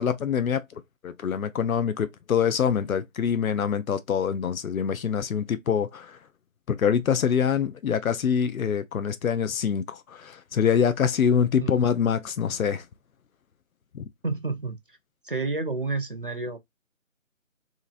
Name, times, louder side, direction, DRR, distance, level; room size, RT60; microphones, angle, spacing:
voice 1, 0.0-6.2 6.7-12.8 13.9-14.0, left 7 dB, 80° left, 0.6 m, -25 dB
voice 2, 14.2-14.8 15.2-16.6, right 3 dB, 40° right, 0.4 m, -29 dB
2.8 x 2.4 x 2.4 m
figure-of-eight pair, 170°, 41 cm